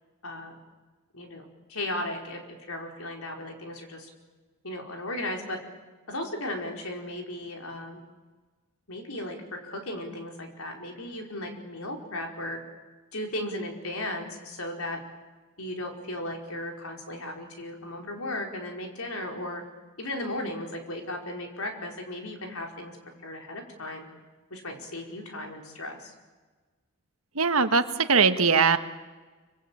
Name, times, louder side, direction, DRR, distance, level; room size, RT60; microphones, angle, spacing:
voice 1, 0.2-0.6 1.1-4.1 4.6-5.6 6.1-8.0 8.9-12.6 13.1-15.0 15.6-19.6 20.0-23.0 23.2-24.1 24.5-26.1, left 1 dB, 85° left, 2 dB, 4.8 m, -36 dB
voice 2, 27.3-28.8, right 5 dB, 80° right, 9 dB, 1.6 m, -21 dB
26.0 x 25.0 x 8.7 m, 1.3 s
head